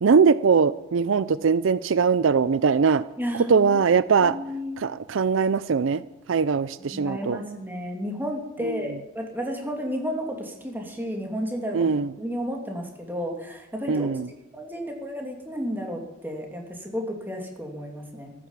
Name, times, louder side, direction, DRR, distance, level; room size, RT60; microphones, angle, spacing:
voice 1, 0.0-3.0 3.5-4.4 4.8-6.0 6.3-7.4 8.6-8.8 11.7-12.1 13.9-14.3, right 5 dB, 70° right, 16 dB, 0.5 m, -21 dB
voice 2, 3.2-3.8 4.2-4.8 6.8-11.9 12.2-14.2 14.5-18.3, equal, 10° right, 1 dB, 2.7 m, -32 dB
14.0 x 13.5 x 7.3 m, 0.93 s
head